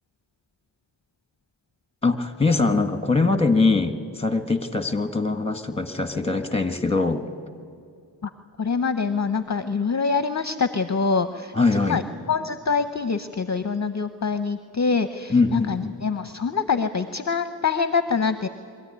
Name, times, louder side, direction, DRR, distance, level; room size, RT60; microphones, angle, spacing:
voice 1, 2.0-7.2 11.5-12.0 15.3-16.0, left 3 dB, 15° left, 8 dB, 1.5 m, -22 dB
voice 2, 8.6-11.5 11.9-12.0 12.3-18.5, left 5 dB, 40° left, 10 dB, 0.7 m, -25 dB
23.0 x 14.5 x 9.8 m, 2.3 s
wide cardioid pair, 45°, 45 cm